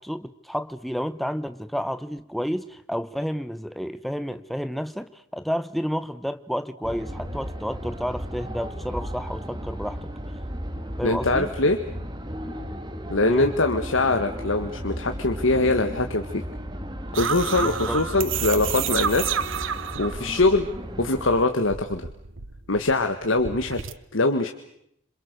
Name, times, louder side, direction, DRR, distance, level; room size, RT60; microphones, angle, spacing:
voice 1, 0.0-10.1 11.0-11.5 13.2-13.5 17.6-18.0, equal, ahead, 11 dB, 1.0 m, -30 dB
sound 1, 6.8-21.5, equal, 20° right, 2.0 m, -35 dB
voice 2, 11.0-11.8 13.1-16.4 17.1-19.3 20.0-20.7 21.0-22.1 22.7-23.8 24.1-24.5, left 2 dB, 75° left, 6 dB, 1.6 m, -23 dB
sound 2, 17.1-21.2 21.5-23.9, right 8 dB, 75° right, 1.0 m, -30 dB
27.5 x 27.0 x 6.7 m, 0.75 s
head